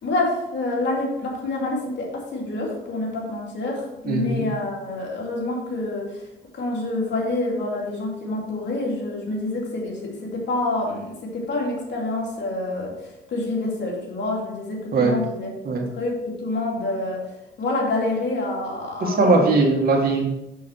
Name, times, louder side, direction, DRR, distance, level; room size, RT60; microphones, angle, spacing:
voice 1, 0.0-6.3 6.5-17.2 17.6-19.5, left 2 dB, 65° left, -2 dB, 2.6 m, -27 dB
voice 2, 4.1-4.5 14.9-15.2 15.7-15.8 19.0-20.2, right 3 dB, 50° right, 0 dB, 2.0 m, -19 dB
6.4 x 6.3 x 4.5 m, 0.93 s
cardioid pair, 90°, 20 cm